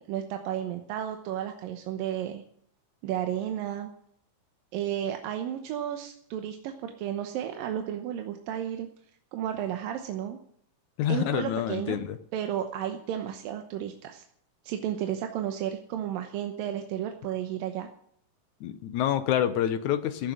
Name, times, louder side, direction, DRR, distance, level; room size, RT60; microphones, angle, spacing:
voice 1, 0.0-2.4 3.0-3.9 4.7-8.9 9.3-10.4 11.1-12.0 12.3-14.2 14.6-17.9, right 10 dB, 90° right, 6 dB, 2.8 m, -33 dB
voice 2, 11.0-12.2 18.6-20.3, left 10 dB, 70° left, 12 dB, 2.1 m, -27 dB
15.5 x 7.2 x 9.4 m, 0.66 s
omnidirectional pair, 3.9 m